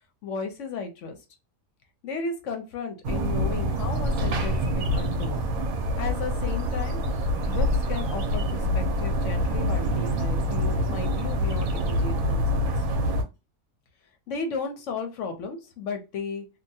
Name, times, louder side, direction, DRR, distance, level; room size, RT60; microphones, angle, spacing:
voice 1, 0.2-1.2 2.0-5.4 6.0-7.0 7.5-12.7 14.3-16.5, left 4 dB, 65° left, 5 dB, 0.8 m, -34 dB
sound 1, 3.0-13.2, equal, 65° right, 1.0 m, -26 dB
2.8 x 2.2 x 2.6 m, 0.27 s
omnidirectional pair, 1.8 m